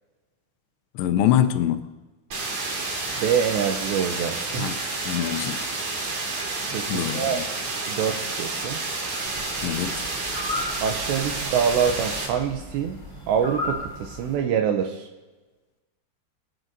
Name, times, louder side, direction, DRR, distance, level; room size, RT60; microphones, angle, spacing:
voice 1, 1.0-1.9 4.6-4.8 5.1-5.6 6.9-7.5 9.6-10.1, left 11 dB, 85° left, 2.6 m, -24 dB
sound 1, 2.3-12.3, right 3 dB, 45° right, 3.0 m, -30 dB
voice 2, 3.2-4.7 6.7-7.4 7.9-8.8 10.8-13.0 13.3-15.1, right 8 dB, 90° right, 2.5 m, -25 dB
sound 2, 9.2-14.4, left 2 dB, 10° left, 1.8 m, -35 dB
25.0 x 9.1 x 2.7 m
omnidirectional pair, 5.9 m